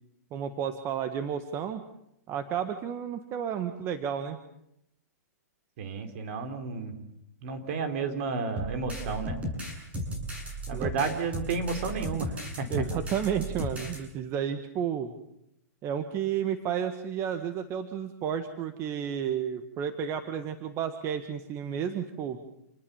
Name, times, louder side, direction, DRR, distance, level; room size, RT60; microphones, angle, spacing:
voice 1, 0.3-1.8 2.3-4.4 10.7-10.9 12.7-15.1 15.8-22.4, right 8 dB, 30° right, 8 dB, 1.6 m, -32 dB
voice 2, 5.8-7.0 7.4-9.4 10.7-12.7, right 4 dB, 55° right, 6 dB, 4.4 m, -32 dB
sound 1, 8.6-14.0, right 1 dB, 15° right, 8.0 m, -35 dB
28.5 x 20.0 x 7.3 m, 0.81 s
hypercardioid pair, 140°, 9 cm